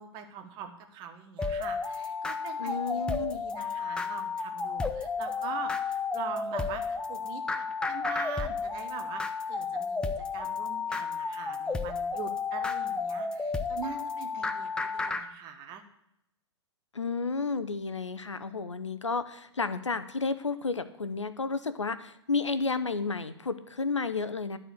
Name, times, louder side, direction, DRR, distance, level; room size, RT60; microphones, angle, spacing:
voice 1, 0.0-15.8, right 7 dB, 30° right, 6 dB, 1.3 m, -43 dB
sound 1, 1.4-15.2, left 4 dB, 5° left, 0.5 m, -32 dB
voice 2, 2.6-3.4 16.9-24.6, left 4 dB, 85° left, 12 dB, 0.8 m, -32 dB
12.0 x 4.4 x 7.8 m, 0.81 s
figure-of-eight pair, 115°, 15 cm